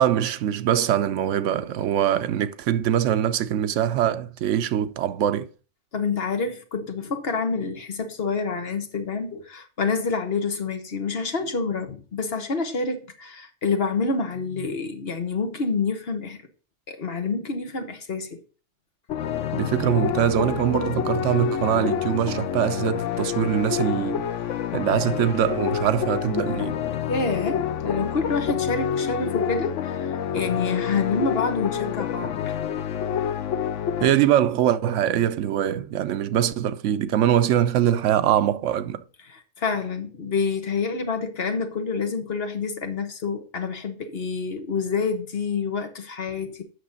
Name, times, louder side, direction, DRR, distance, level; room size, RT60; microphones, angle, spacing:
voice 1, 0.0-5.5 19.5-24.3 24.7-26.8 34.0-39.0, right 10 dB, 85° right, 0.9 m, -23 dB
voice 2, 5.9-16.4 16.9-18.4 27.1-32.6 39.3-46.6, left 4 dB, 55° left, 1.3 m, -27 dB
sound 1, 19.1-34.1, left 9 dB, 90° left, 1.0 m, -27 dB
8.1 x 6.0 x 3.9 m
omnidirectional pair, 1.2 m